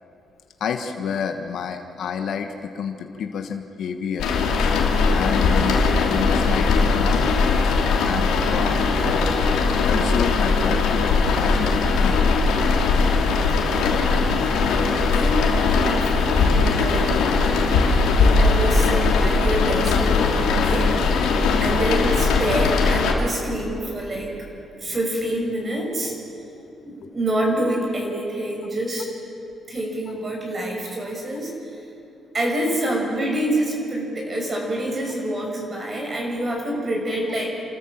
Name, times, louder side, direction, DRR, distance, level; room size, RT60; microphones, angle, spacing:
voice 1, 0.6-4.3 4.7-7.3 8.0-8.9 9.8-12.3 18.9-19.0, left 7 dB, 70° left, 6 dB, 1.4 m, -29 dB
sound 1, 4.2-23.1, left 4 dB, 90° left, 2.8 m, -19 dB
voice 2, 15.0-17.6 18.2-21.3 21.6-24.3 24.8-26.1 26.8-29.1 29.7-31.8 32.3-37.5, right 1 dB, 35° right, -1 dB, 6.0 m, -27 dB
28.5 x 13.5 x 7.4 m, 2.9 s
cardioid pair, 90°, 0 cm